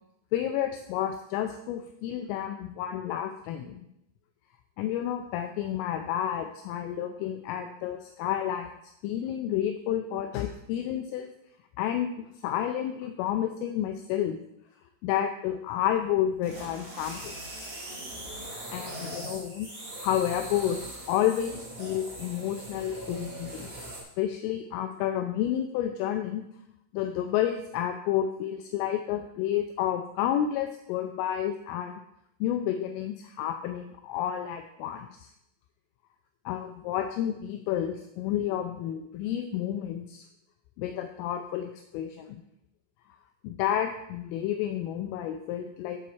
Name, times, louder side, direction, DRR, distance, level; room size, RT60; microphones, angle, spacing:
voice 1, 0.3-3.8 4.8-8.7 9.0-11.3 11.8-12.1 12.4-14.4 15.0-17.4 18.7-19.7 20.0-23.7 24.2-26.5 26.9-32.0 32.4-35.3 36.5-40.2 40.8-42.4 43.4-46.0, left 10 dB, 85° left, 6 dB, 3.0 m, -30 dB
sound 1, 16.0-24.0, right 1 dB, 85° right, 0.5 m, -40 dB
9.7 x 4.3 x 7.0 m, 0.80 s
omnidirectional pair, 6.0 m